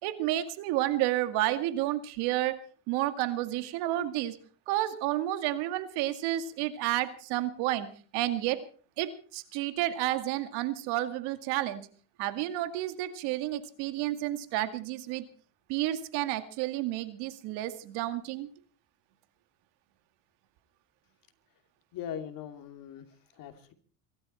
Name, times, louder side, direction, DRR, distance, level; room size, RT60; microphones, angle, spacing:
voice 1, 0.0-2.6 2.9-4.4 4.7-7.9 8.1-8.6 9.0-11.8 12.2-15.2 15.7-18.5, right 14 dB, 70° right, 10 dB, 2.3 m, -30 dB
voice 2, 21.9-23.1 23.3-23.7, left 9 dB, 55° left, 8 dB, 2.6 m, -40 dB
23.5 x 13.0 x 4.4 m, 0.42 s
supercardioid pair, 110°, 40 cm